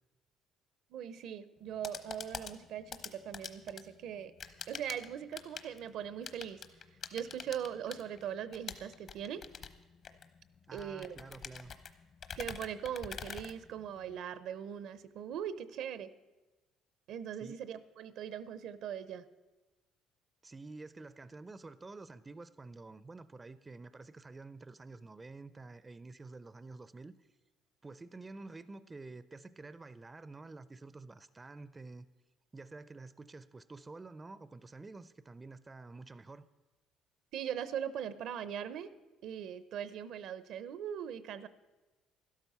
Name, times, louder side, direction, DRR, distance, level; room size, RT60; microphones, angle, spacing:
voice 1, 0.9-4.3 4.7-6.6 7.1-9.4 10.7-11.2 12.4-16.1 17.1-19.3 37.3-38.9 39.2-41.5, right 9 dB, 70° right, 15 dB, 0.6 m, -40 dB
sound 1, 1.6-14.2, left 6 dB, 50° left, 1.0 m, -47 dB
voice 2, 10.7-11.7 17.4-17.6 20.4-27.3 27.8-32.1 32.5-36.5, right 3 dB, 20° right, 15 dB, 0.4 m, -49 dB
12.5 x 12.0 x 5.6 m, 1.2 s
cardioid pair, 105°, 0 cm